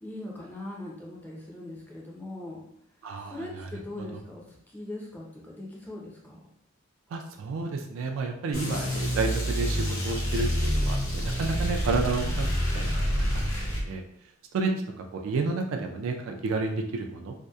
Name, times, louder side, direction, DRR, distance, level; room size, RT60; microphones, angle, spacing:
voice 1, 0.0-2.6 3.2-4.4 4.7-6.4, left 1 dB, 10° left, -3 dB, 0.4 m, -40 dB
voice 2, 3.0-3.7 4.0-4.1 7.1-12.5 12.7-13.4 13.8-14.0 14.5-14.7 15.0-17.3, right 3 dB, 75° right, 4 dB, 0.3 m, -31 dB
sound 1, 8.5-13.8, equal, 80° left, 0.7 m, -27 dB
2.7 x 2.0 x 2.3 m, 0.74 s
head